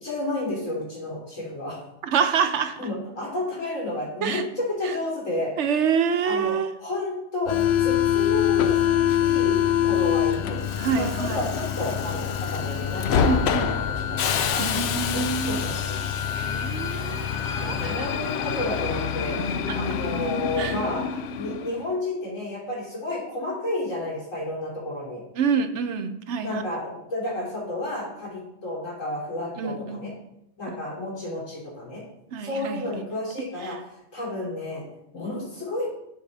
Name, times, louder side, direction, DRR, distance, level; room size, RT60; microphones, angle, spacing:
voice 1, 0.0-1.8 2.8-5.5 6.2-7.5 7.8-10.6 11.0-14.6 15.0-16.0 17.6-19.4 19.7-21.0 21.4-25.2 26.4-30.1 30.6-32.0 32.4-33.8 34.1-34.8 35.1-35.9, left 2 dB, 90° left, -5 dB, 3.5 m, -31 dB
voice 2, 2.0-2.8 4.2-4.5 4.8-4.9 5.6-6.7 10.8-11.4 13.2-13.7 14.6-15.6 16.3-18.1 19.7-19.8 20.6-20.8 25.4-26.6 29.6-30.0 32.3-32.8 33.6-33.8, right 6 dB, 70° right, 8 dB, 0.9 m, -27 dB
Subway metro underground, 7.5-21.8, left 9 dB, 65° left, 0.8 m, -25 dB
10.5 x 4.7 x 4.0 m, 0.81 s
omnidirectional pair, 1.3 m